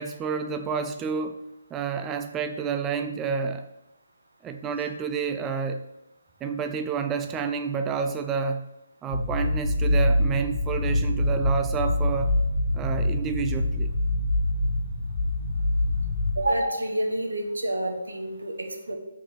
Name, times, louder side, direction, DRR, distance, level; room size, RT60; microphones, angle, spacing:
voice 1, 0.0-1.4 1.7-3.7 4.4-5.8 6.4-8.7 9.0-12.3 12.7-13.9, right 6 dB, 15° right, 7 dB, 0.4 m, -29 dB
sound 1, 9.1-16.4, left 1 dB, 45° left, 1.5 m, -25 dB
voice 2, 16.4-19.0, right 1 dB, 90° right, 4 dB, 1.6 m, -28 dB
6.1 x 4.7 x 6.5 m, 0.92 s
hypercardioid pair, 150°, 0 cm